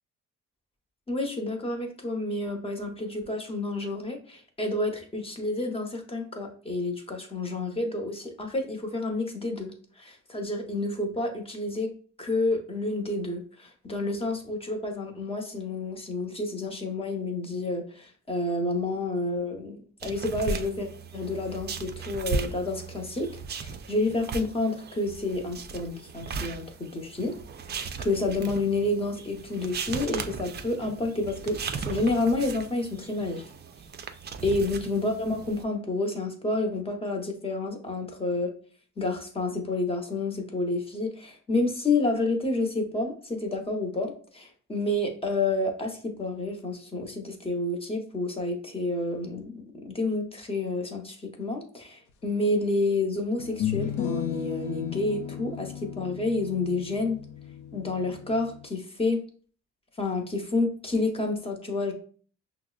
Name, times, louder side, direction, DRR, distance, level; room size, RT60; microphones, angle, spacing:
voice 1, 1.1-11.9 12.2-27.4 27.7-33.4 34.4-38.5 39.0-57.2 57.7-59.2 60.0-61.9, left 2 dB, 20° left, 3 dB, 0.8 m, -29 dB
sound 1, 20.0-35.6, right 5 dB, 35° right, 0.4 m, -37 dB
sound 2, 52.3-52.4 53.4-58.6, left 10 dB, 75° left, 0.5 m, -35 dB
5.7 x 2.0 x 2.4 m, 0.43 s
cardioid pair, 90°, 30 cm